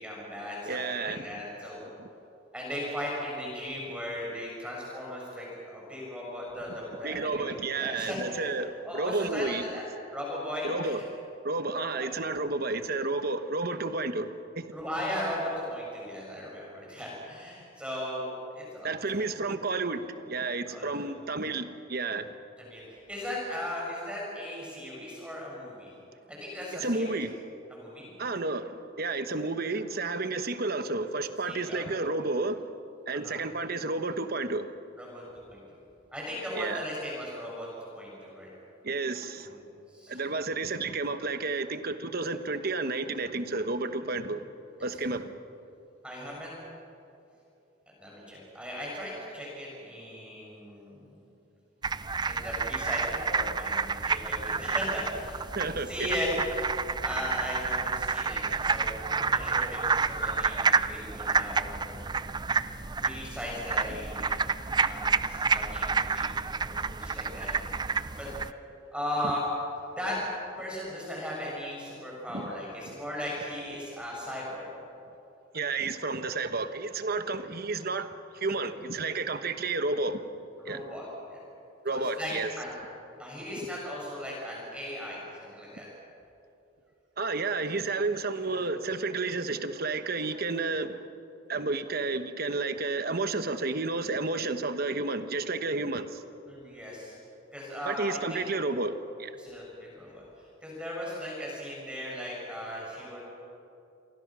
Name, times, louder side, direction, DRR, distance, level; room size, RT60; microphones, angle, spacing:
voice 1, 0.0-1.8 2.5-8.5 8.8-9.9 10.1-11.0 11.7-12.1 14.7-18.9 19.1-19.3 20.7-21.1 22.6-25.9 26.3-27.2 27.7-28.1 31.5-31.9 33.1-33.4 35.0-35.8 36.1-37.7 37.9-38.5 39.4-39.6 39.9-40.2 46.0-46.6 48.0-51.0 52.2-55.4 55.9-56.3 57.0-62.0 63.0-64.3 64.8-66.3 66.5-67.5 68.2-68.3 68.9-69.4 69.9-70.2 70.6-74.7 80.6-81.4 81.9-82.7 83.2-85.9 96.5-97.1 97.5-98.4 99.4-100.2 100.6-103.2, left 1 dB, 5° right, 7.5 m, -37 dB
voice 2, 0.6-1.3 2.0-2.1 7.0-9.6 10.6-11.0 11.4-14.7 18.8-22.3 26.8-27.4 28.2-32.6 33.1-34.7 36.5-36.8 38.8-39.6 40.1-44.4 44.8-45.3 55.5-56.1 63.9-64.0 64.8-64.9 72.3-72.5 72.9-73.0 75.5-80.2 80.6-80.8 81.8-82.5 87.2-91.1 91.5-96.2 97.9-99.3, right 3 dB, 50° right, 1.2 m, -31 dB
sound 1, 51.8-68.5, right 5 dB, 20° right, 0.5 m, -29 dB
29.5 x 23.5 x 6.3 m
head